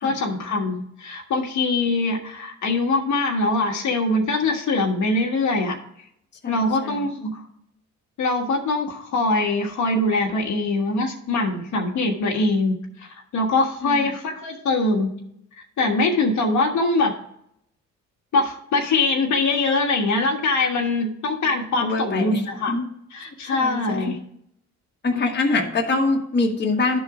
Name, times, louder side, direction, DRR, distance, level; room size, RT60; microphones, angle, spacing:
voice 1, 0.0-5.8 6.5-7.4 8.2-15.1 15.8-17.1 18.3-22.7 23.1-24.2 25.1-25.2, left 2 dB, 70° left, 1 dB, 1.4 m, -23 dB
voice 2, 6.4-7.1 13.8-14.1 21.8-22.4 22.7-22.8 23.6-24.1 25.0-27.0, left 3 dB, 35° left, 1 dB, 1.4 m, -24 dB
11.5 x 4.0 x 4.8 m, 0.72 s
cardioid pair, 90°, 30 cm